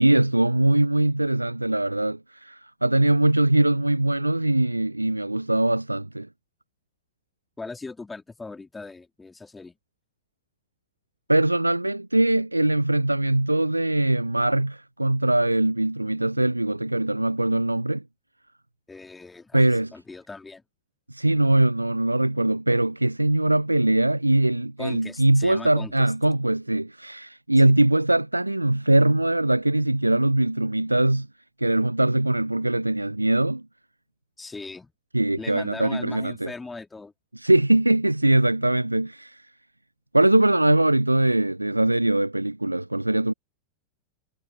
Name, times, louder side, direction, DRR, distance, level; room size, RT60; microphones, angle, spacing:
voice 1, 0.0-6.3 11.3-18.0 19.5-19.9 21.1-31.3 31.6-33.7 35.1-36.5 37.3-39.5 40.1-43.3, right 1 dB, 85° right, 0.5 m, -22 dB
voice 2, 7.6-9.8 18.9-19.6 19.9-20.6 24.8-26.1 27.6-27.8 34.4-34.9 35.4-37.1, left 3 dB, 10° left, 3.0 m, -39 dB
figure-of-eight pair, 90°, 0 cm